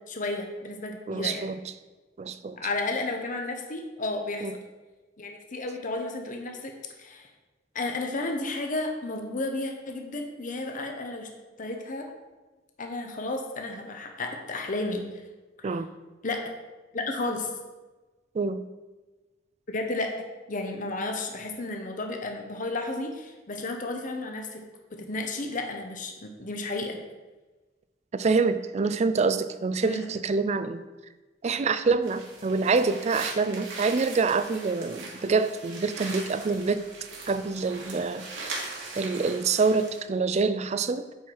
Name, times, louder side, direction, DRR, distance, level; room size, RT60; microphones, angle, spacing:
voice 1, 0.1-1.5 2.6-4.5 5.2-7.3 7.7-11.3 11.6-12.1 12.8-15.0 15.6-15.8 16.2-16.4 16.9-17.5 19.7-20.1 20.5-24.6 24.9-27.0 29.8-30.1, left 2 dB, 45° left, 3 dB, 0.9 m, -32 dB
voice 2, 1.1-1.6 2.2-2.6 4.4-4.5 15.6-15.9 18.3-18.6 28.1-30.8 31.4-36.8 37.3-38.6 39.0-41.0, right 4 dB, 35° right, 12 dB, 0.4 m, -26 dB
sound 1, 32.0-40.0, right 3 dB, 85° right, 2.2 m, -40 dB
9.2 x 4.6 x 4.6 m, 1.2 s
head